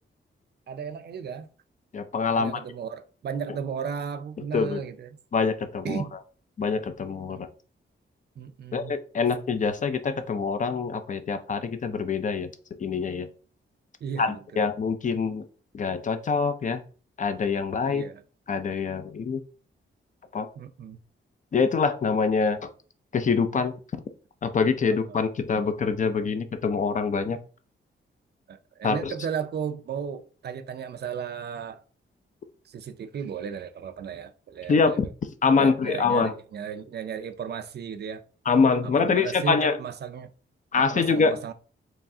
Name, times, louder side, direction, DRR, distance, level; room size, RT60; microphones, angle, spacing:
voice 1, 0.7-1.5 2.3-5.1 5.8-6.2 7.3-7.4 8.4-9.0 14.0-14.7 17.9-18.2 20.6-21.0 24.9-25.2 28.5-31.8 32.7-35.0 35.6-38.2 38.8-40.3 40.7-41.5, right 7 dB, 55° right, 0.4 m, -35 dB
voice 2, 1.9-2.6 4.5-4.8 5.3-6.0 6.6-7.5 8.7-12.5 12.8-13.3 14.2-15.4 15.7-16.8 17.2-18.0 18.5-19.4 20.3-20.5 21.5-22.7 23.1-24.0 24.4-27.4 28.8-29.1 34.7-35.1 35.4-36.3 38.5-39.8 40.7-41.3, left 5 dB, 40° left, 0.4 m, -25 dB
4.7 x 3.2 x 2.6 m
wide cardioid pair, 165°, 21 cm